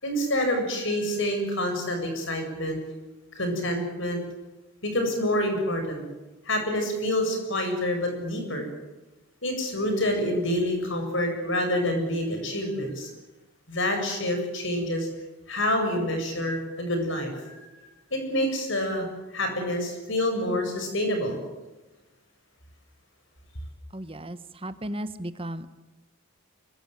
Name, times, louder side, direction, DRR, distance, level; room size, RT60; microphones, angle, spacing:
voice 1, 0.0-2.8 3.3-4.2 4.8-6.0 6.4-8.7 9.4-13.1 13.7-15.1 15.5-17.7 18.1-21.4, left 1 dB, 60° left, 4 dB, 7.8 m, -27 dB
voice 2, 23.9-25.7, right 1 dB, 25° right, 12 dB, 1.2 m, -35 dB
24.5 x 23.5 x 9.4 m, 1.1 s
head